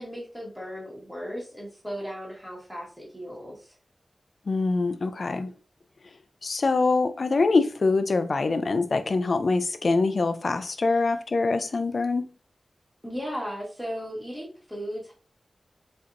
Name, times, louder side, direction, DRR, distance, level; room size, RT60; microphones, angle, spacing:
voice 1, 0.0-3.7 13.0-15.1, equal, 5° right, 1.3 m, -36 dB
voice 2, 4.5-5.5 6.0-6.1 6.4-12.2, left 3 dB, 60° left, 0.4 m, -24 dB
4.2 x 2.6 x 2.5 m
wide cardioid pair, 100°, 0 cm